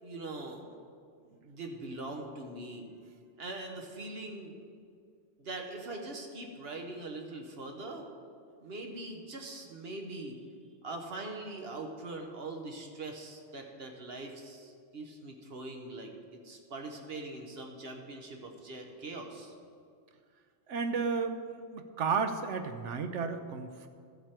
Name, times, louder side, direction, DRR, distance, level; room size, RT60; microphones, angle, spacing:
voice 1, 0.0-0.6 1.4-3.0 3.4-4.5 5.4-8.1 8.6-10.4 10.8-16.1 16.4-19.5, right 2 dB, 60° right, 3 dB, 1.4 m, -42 dB
voice 2, 20.7-23.9, right 5 dB, 85° right, 8 dB, 1.1 m, -33 dB
13.0 x 8.1 x 4.5 m, 2.2 s
omnidirectional pair, 1.2 m